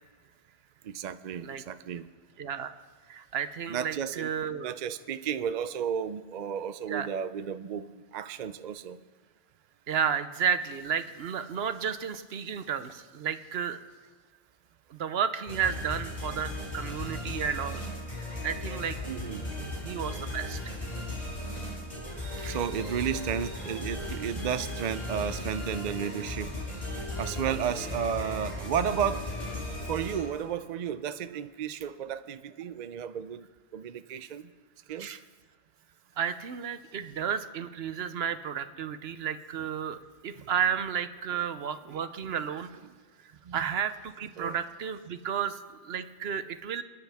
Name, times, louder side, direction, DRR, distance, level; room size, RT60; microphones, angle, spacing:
voice 1, 0.8-2.1 3.7-4.3 4.6-9.0 18.2-18.3 19.1-19.4 22.5-26.6 27.1-29.3 29.9-33.5 33.7-34.5 34.9-35.1 40.3-40.5 41.9-42.0 43.5-43.6 44.4-44.6, right 8 dB, 55° right, 12 dB, 0.5 m, -33 dB
voice 2, 2.4-2.8 3.1-4.7 6.9-7.1 9.9-13.8 14.9-17.9 18.4-19.0 19.6-20.7 22.3-22.6 35.0-35.2 36.2-42.7 43.5-46.8, right 7 dB, 70° right, 11 dB, 0.9 m, -32 dB
sound 1, 15.4-30.5, left 1 dB, 40° left, 6.2 m, -36 dB
29.0 x 9.9 x 3.5 m, 1.5 s
omnidirectional pair, 1.1 m